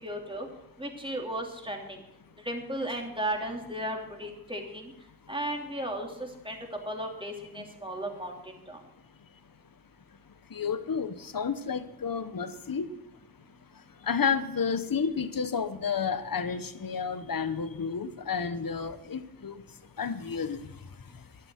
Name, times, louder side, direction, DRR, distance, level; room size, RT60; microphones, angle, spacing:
voice 1, 0.0-0.5 0.8-2.0 2.4-4.9 5.3-6.6 6.9-8.4 8.7-8.8, right 1 dB, 15° right, 1 dB, 2.9 m, -35 dB
voice 2, 10.5-12.9 14.1-19.5 20.0-20.6, left 6 dB, 65° left, 12 dB, 0.9 m, -31 dB
11.5 x 11.5 x 6.3 m, 0.81 s
wide cardioid pair, 70°, 37 cm